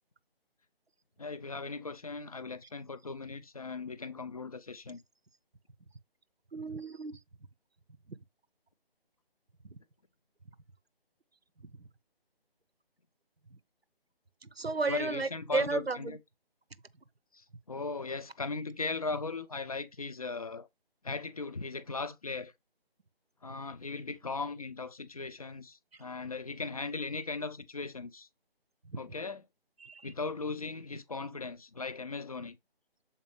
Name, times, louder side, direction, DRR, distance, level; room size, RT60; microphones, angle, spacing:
voice 1, 1.2-5.0 14.9-16.2 17.3-20.7 21.0-22.5 23.4-28.3 29.0-29.4 30.0-32.6, left 4 dB, 40° left, 0.6 m, -38 dB
voice 2, 6.5-7.2 9.6-9.8 11.8-11.9 14.4-16.2 28.9-29.0 29.8-30.1, right 3 dB, 80° right, 0.9 m, -33 dB
7.3 x 4.3 x 3.3 m
figure-of-eight pair, 150°, 30 cm